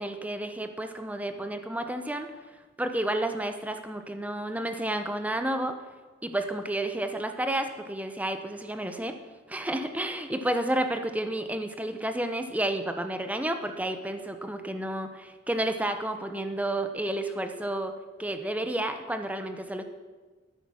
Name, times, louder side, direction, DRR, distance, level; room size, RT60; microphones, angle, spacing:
voice 1, 0.0-2.3 2.8-5.8 6.2-9.1 9.5-17.9 18.2-19.8, right 1 dB, 10° right, 7 dB, 0.8 m, -31 dB
12.5 x 9.9 x 6.4 m, 1.4 s
head